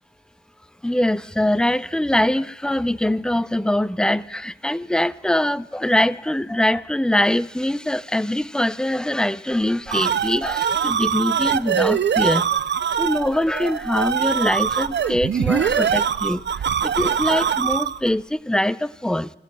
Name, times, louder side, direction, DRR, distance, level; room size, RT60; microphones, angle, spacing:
voice 1, 0.8-12.7 13.0-16.4 16.8-19.3, left 1 dB, 5° left, 0.4 m, -23 dB
sound 1, 9.6-18.1, right 8 dB, 70° right, 0.4 m, -23 dB
29.5 x 16.0 x 2.2 m
cardioid pair, 45°, 19 cm